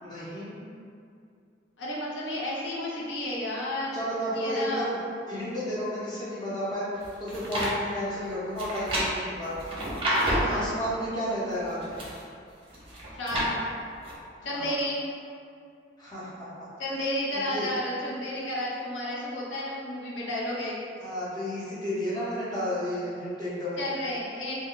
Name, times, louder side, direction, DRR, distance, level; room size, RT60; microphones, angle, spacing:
voice 1, 0.0-0.6 3.9-5.0 5.3-12.0 14.4-14.7 16.0-16.5 17.3-17.7 21.0-23.8, equal, 25° left, -10 dB, 0.6 m, -32 dB
voice 2, 1.8-4.0 4.3-4.9 10.2-10.6 13.2-13.6 14.4-15.0 16.8-20.8 23.8-24.6, left 1 dB, 85° left, -6 dB, 0.6 m, -32 dB
sound 1, 7.0-7.7 8.6-10.6 11.5-12.2 12.7-13.5 14.0-14.1, right 1 dB, 30° right, 0.6 m, -29 dB
2.2 x 2.1 x 3.6 m, 2.4 s
head